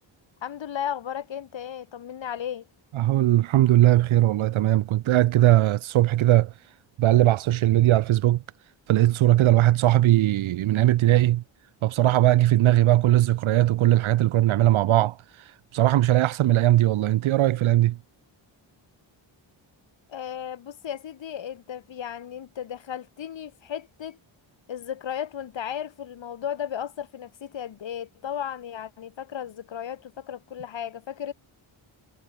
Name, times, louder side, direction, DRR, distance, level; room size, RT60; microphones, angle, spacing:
voice 1, 0.4-2.7 20.1-24.2 24.7-31.3, left 9 dB, 70° left, 1.9 m, -35 dB
voice 2, 3.0-6.5 7.0-8.4 8.9-11.4 11.8-15.1 15.7-18.0, right 14 dB, 85° right, 0.7 m, -19 dB
wide cardioid pair, 135°, 47 cm